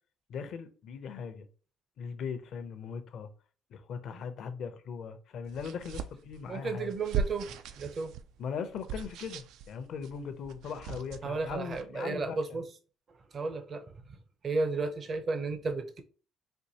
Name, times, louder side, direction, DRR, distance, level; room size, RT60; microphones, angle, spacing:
voice 1, 0.3-1.5 2.0-3.3 3.7-6.9 8.4-12.4, left 6 dB, 65° left, 0.6 m, -39 dB
sound 1, 5.5-11.8, right 7 dB, 80° right, 0.3 m, -39 dB
voice 2, 6.5-7.5 7.8-8.1 11.2-12.7 13.3-13.9 14.4-16.0, right 3 dB, 45° right, 0.7 m, -33 dB
4.4 x 2.6 x 2.8 m
supercardioid pair, 75°, 0 cm